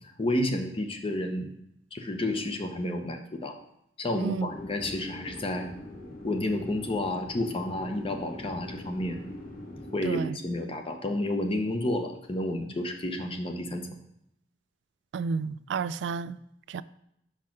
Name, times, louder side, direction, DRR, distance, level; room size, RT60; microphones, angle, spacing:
voice 1, 0.0-1.5 1.9-3.6 4.0-5.7 6.2-9.2 9.9-13.9, left 1 dB, 30° left, 0.8 m, -30 dB
voice 2, 4.2-4.5 10.0-10.4 15.1-16.4 16.7-16.8, right 5 dB, 80° right, 0.3 m, -31 dB
sound 1, 4.5-10.0, left 1 dB, 55° left, 2.2 m, -42 dB
5.7 x 4.6 x 5.9 m
head